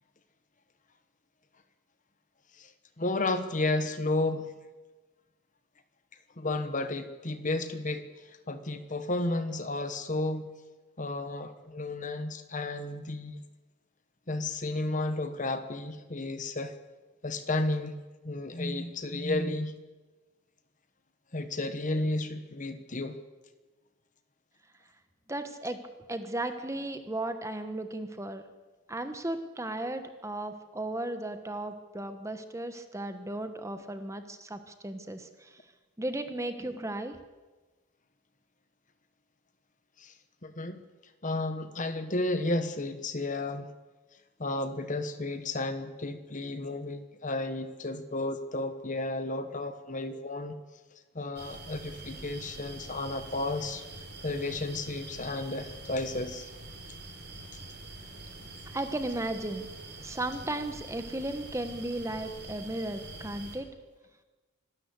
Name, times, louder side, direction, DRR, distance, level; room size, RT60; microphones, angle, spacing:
voice 1, 3.0-4.5 6.4-10.5 11.0-13.4 14.3-16.7 17.2-18.0 18.2-19.7 21.3-23.2 40.0-40.1 40.4-40.8 41.2-43.7 44.4-50.6 51.1-53.8 54.2-56.5, left 2 dB, 35° left, 10 dB, 1.2 m, -32 dB
voice 2, 25.3-25.8 26.1-28.4 28.9-35.5 36.0-37.2 58.7-59.7 60.0-63.7, right 1 dB, 15° right, 8 dB, 1.2 m, -35 dB
sound 1, 51.4-63.6, right 2 dB, 50° right, 4.6 m, -45 dB
26.0 x 13.0 x 8.2 m, 1.2 s
head